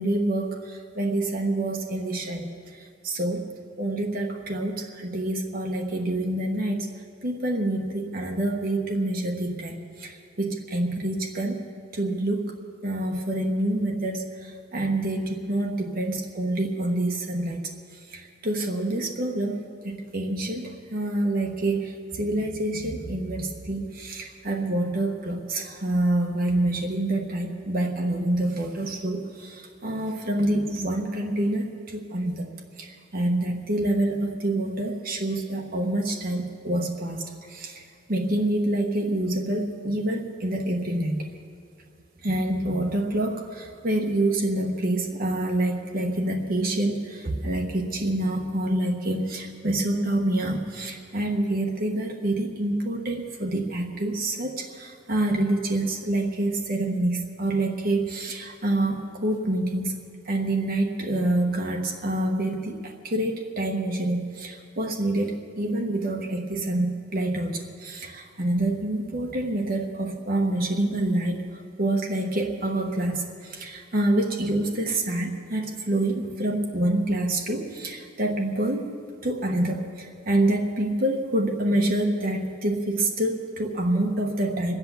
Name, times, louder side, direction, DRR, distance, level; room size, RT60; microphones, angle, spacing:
voice 1, 0.0-3.5 3.8-6.9 7.2-11.6 11.9-12.6 12.8-17.6 18.1-19.6 19.8-32.5 32.8-41.3 42.2-60.0 60.2-78.9 79.2-84.8, right 1 dB, 45° right, 1 dB, 1.1 m, -27 dB
24.0 x 8.2 x 7.0 m, 2.5 s
head